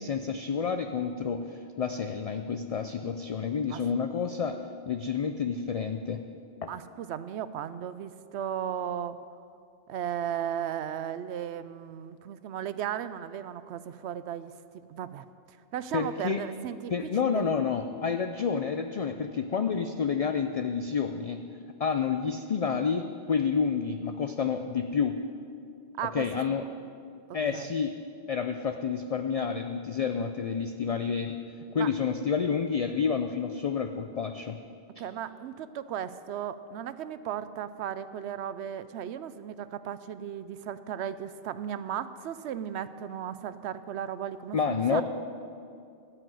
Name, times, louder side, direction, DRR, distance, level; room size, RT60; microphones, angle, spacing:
voice 1, 0.0-4.6 4.9-6.2 6.6-6.7 15.9-16.4 16.9-21.4 21.8-25.2 26.0-26.7 27.3-27.9 28.3-31.4 31.7-34.6 35.0-35.1 44.5-45.0, left 6 dB, 50° left, 7 dB, 0.4 m, -29 dB
voice 2, 6.7-9.2 9.9-14.5 14.9-15.3 15.7-16.9 17.3-17.4 26.0-26.3 27.5-27.7 31.8-31.9 35.0-45.0, right 9 dB, 80° right, 14 dB, 0.9 m, -35 dB
14.0 x 6.2 x 9.2 m, 2.4 s
omnidirectional pair, 1.1 m